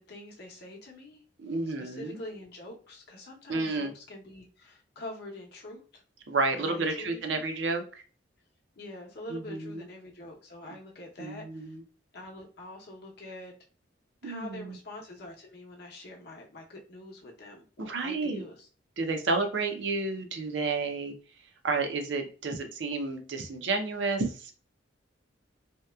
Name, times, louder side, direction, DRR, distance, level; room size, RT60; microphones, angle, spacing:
voice 1, 0.0-1.2 1.7-6.0 6.5-7.4 8.8-11.8 12.1-13.5 14.2-18.7, left 1 dB, 55° left, 0 dB, 0.7 m, -45 dB
voice 2, 1.4-2.2 3.5-3.9 6.3-8.0 9.3-9.8 11.2-11.8 14.2-14.8 17.8-18.4 19.0-21.1 21.6-24.5, right 3 dB, 65° right, 5 dB, 0.5 m, -31 dB
2.8 x 2.1 x 2.2 m, 0.38 s
head